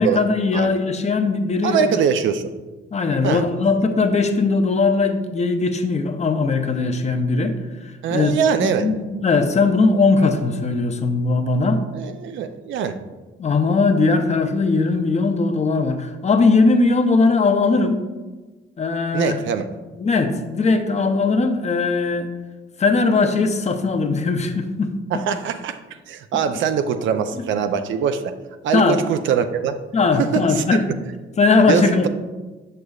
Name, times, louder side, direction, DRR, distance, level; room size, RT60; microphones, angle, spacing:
voice 1, 0.0-1.9 2.9-7.6 7.8-11.8 13.4-18.0 18.8-19.4 20.0-22.3 22.8-24.9 28.7-29.0 29.9-30.8 31.4-32.1, left 3 dB, 35° left, 6 dB, 0.6 m, -19 dB
voice 2, 1.6-2.5 3.2-3.4 8.0-8.9 11.9-13.0 19.1-19.6 25.1-25.8 26.1-28.3 28.6-29.8 30.2-30.6 31.7-32.1, right 7 dB, 75° right, 9 dB, 0.5 m, -22 dB
6.6 x 6.3 x 2.4 m, 1.2 s
cardioid pair, 90°, 20 cm